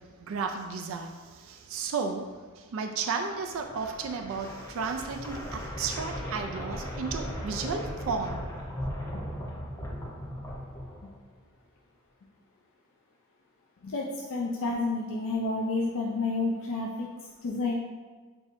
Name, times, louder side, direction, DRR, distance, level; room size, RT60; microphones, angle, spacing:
voice 1, 0.2-2.2 2.7-8.4, right 5 dB, 65° right, 5 dB, 0.3 m, -33 dB
sound 1, 3.4-11.4, equal, 15° left, 0.7 m, -37 dB
voice 2, 9.1-9.6 13.8-17.1 17.4-17.7, left 3 dB, 60° left, -2 dB, 0.4 m, -30 dB
6.7 x 2.6 x 2.6 m, 1.4 s
head